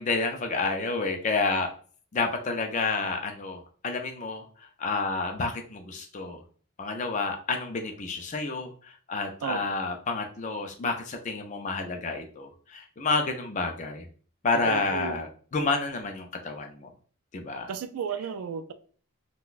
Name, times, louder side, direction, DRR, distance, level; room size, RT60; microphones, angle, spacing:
voice 1, 0.0-1.7 2.1-6.4 6.8-14.1 14.4-16.9 17.3-17.7, left 3 dB, 35° left, 0.4 m, -30 dB
voice 2, 14.7-15.2 17.7-18.7, right 6 dB, 80° right, 0.3 m, -33 dB
3.8 x 2.2 x 2.4 m
head